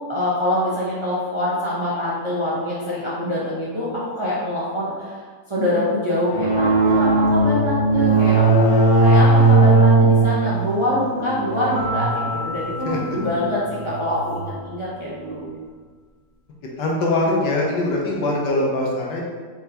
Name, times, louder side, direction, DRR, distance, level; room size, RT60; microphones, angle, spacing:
voice 1, 0.1-15.5, left 1 dB, 35° right, -8 dB, 0.4 m, -25 dB
sound 1, 6.3-14.4, right 3 dB, 65° left, 1.4 m, -18 dB
sound 2, 11.8-14.5, left 1 dB, 15° right, 1.2 m, -32 dB
voice 2, 12.8-13.2 16.8-19.2, left 2 dB, 90° left, -2 dB, 1.5 m, -22 dB
4.5 x 3.8 x 2.8 m, 1.5 s
omnidirectional pair, 1.8 m